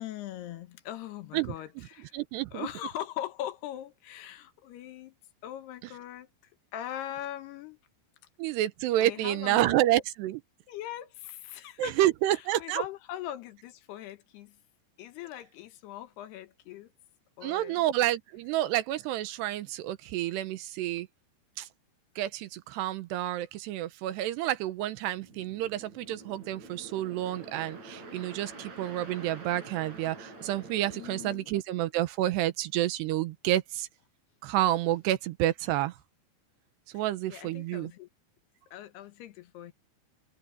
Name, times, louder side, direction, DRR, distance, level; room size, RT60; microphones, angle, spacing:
voice 1, 0.0-2.2 2.5-5.1 5.4-6.3 6.7-7.8 9.0-9.8 10.7-12.0 12.3-14.6 15.0-16.9 17.4-17.8 30.9-31.5 36.9-38.1 38.7-39.7, left 12 dB, 75° left, 3.1 m, -41 dB
voice 2, 2.1-2.7 8.4-10.4 11.8-12.8 17.4-21.1 21.6-21.7 22.2-33.9 34.4-36.0 36.9-37.9, right 14 dB, 80° right, 3.0 m, -29 dB
sound 1, 25.2-31.4, right 2 dB, 40° right, 7.5 m, -47 dB
omnidirectional pair, 5.0 m